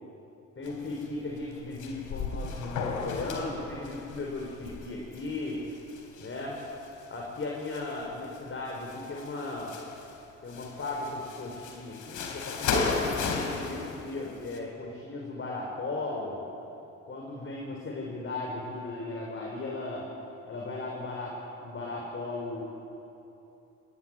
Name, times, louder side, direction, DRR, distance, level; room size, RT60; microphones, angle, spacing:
sound 1, 0.6-1.1 1.4-6.9 7.4-8.4 8.7-10.1 10.5-14.6, left 4 dB, 85° left, 3.5 m, -35 dB
voice 1, 0.6-5.6 6.2-6.5 7.1-9.7 10.4-16.5 17.1-20.0 20.5-22.6, left 2 dB, 40° left, -1 dB, 5.3 m, -36 dB
26.5 x 19.5 x 9.5 m, 2.9 s
cardioid pair, 90°, 30 cm